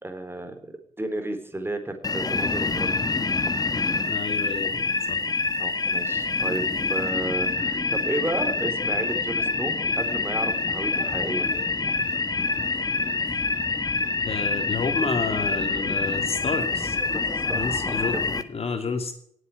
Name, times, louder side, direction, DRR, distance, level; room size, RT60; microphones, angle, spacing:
voice 1, 0.0-2.9 5.6-11.5 17.1-18.2, right 1 dB, 20° right, 7 dB, 3.6 m, -33 dB
sound 1, 2.0-18.4, left 3 dB, 30° left, 1.5 m, -26 dB
voice 2, 4.1-5.2 14.2-17.0 17.5-18.2 18.5-19.1, left 4 dB, 55° left, 6 dB, 3.0 m, -30 dB
18.0 x 8.2 x 9.8 m, 0.67 s
supercardioid pair, 55°, 12 cm